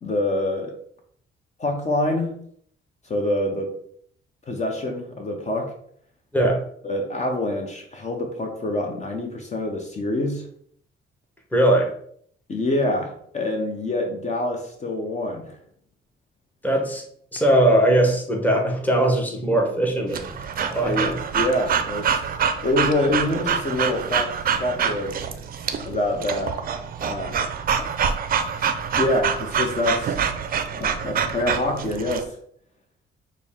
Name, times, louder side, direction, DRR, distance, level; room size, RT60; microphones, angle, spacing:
voice 1, 0.0-0.7 1.6-2.4 3.1-3.7 4.5-5.7 6.8-10.4 12.5-15.6 20.8-22.2 22.6-24.3 24.6-25.2 25.8-26.6 27.0-27.4 29.0-30.2 30.8-32.3, left 1 dB, 35° left, 2 dB, 0.8 m, -26 dB
voice 2, 6.3-6.7 11.5-11.9 16.6-17.0 17.3-20.2 20.6-21.2, right 1 dB, 10° left, 2 dB, 0.9 m, -20 dB
Breathing / Dog, 20.1-32.2, right 7 dB, 45° right, 0.5 m, -26 dB
6.0 x 2.1 x 3.6 m, 0.64 s
cardioid pair, 90°, 20 cm